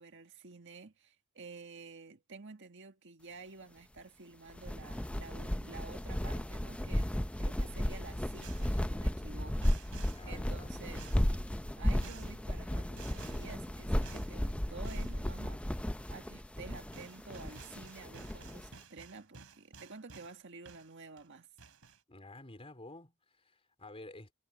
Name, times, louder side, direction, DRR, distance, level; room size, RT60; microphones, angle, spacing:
voice 1, 0.0-7.1 7.4-11.1 11.8-15.6 16.1-21.5, right 4 dB, 60° right, 1.7 m, -51 dB
sound 1, 4.5-18.7, equal, 5° left, 0.5 m, -35 dB
sound 2, 8.4-8.8 9.6-10.3 11.0-11.4 12.0-12.4 13.0-13.5 14.0-14.3 14.8-15.2 16.6-16.7 16.9-20.4 20.7-21.3 21.6-22.0, right 4 dB, 75° right, 3.7 m, -53 dB
voice 2, 10.1-10.9 22.1-24.3, left 2 dB, 25° left, 4.0 m, -51 dB
head